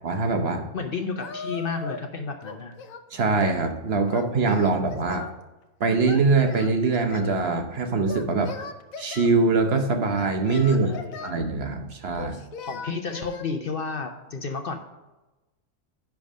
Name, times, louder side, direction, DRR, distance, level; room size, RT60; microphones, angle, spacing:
voice 1, 0.0-0.7 3.1-5.3 5.8-8.6 9.0-10.9 11.2-12.4, right 3 dB, 55° right, 5 dB, 0.9 m, -23 dB
voice 2, 0.7-2.7 10.7-11.3 12.6-14.8, left 4 dB, 50° left, 5 dB, 0.8 m, -32 dB
Singing, 1.2-2.1 2.4-3.6 4.1-5.4 6.1-7.4 8.1-9.3 10.1-11.4 12.1-13.5, left 5 dB, 90° left, 1.1 m, -38 dB
10.5 x 3.5 x 6.2 m, 1.1 s
omnidirectional pair, 1.4 m